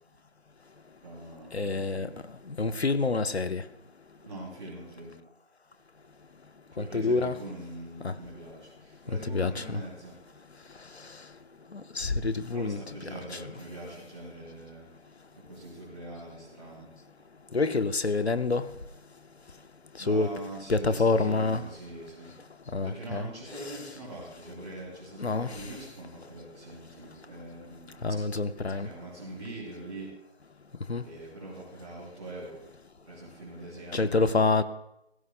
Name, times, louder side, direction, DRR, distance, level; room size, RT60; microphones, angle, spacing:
voice 1, 1.0-2.2 4.2-5.2 6.7-10.2 12.5-14.9 15.3-16.9 20.0-22.3 22.8-28.0 28.7-30.1 31.0-32.6 33.0-34.2, right 1 dB, 25° right, -8 dB, 3.0 m, -43 dB
voice 2, 1.5-2.1 2.5-3.6 6.8-7.3 8.0-8.1 9.3-9.8 11.7-12.8 17.5-18.6 20.1-20.3 20.7-21.6 22.7-23.3 25.2-25.5 28.0-28.9 30.9-31.0 33.9-34.6, left 3 dB, 70° left, 11 dB, 1.0 m, -27 dB
20.0 x 16.5 x 2.2 m, 0.84 s
figure-of-eight pair, 165°, 33 cm